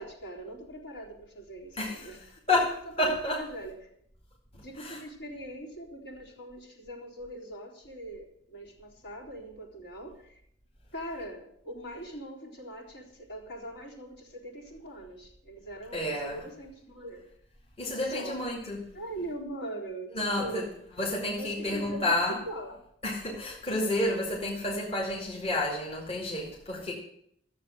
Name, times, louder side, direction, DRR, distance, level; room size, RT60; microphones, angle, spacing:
voice 1, 0.0-2.2 3.0-3.7 4.6-10.4 10.9-17.2 17.9-18.4 18.7-20.7 21.4-22.8, right 1 dB, 65° left, -2 dB, 4.0 m, -42 dB
voice 2, 1.7-2.2 2.5-3.5 4.8-5.0 15.9-16.5 17.8-18.9 20.1-20.7 21.0-22.4 23.0-26.9, left 1 dB, 30° left, -2 dB, 2.4 m, -30 dB
14.0 x 7.7 x 8.1 m, 0.69 s
head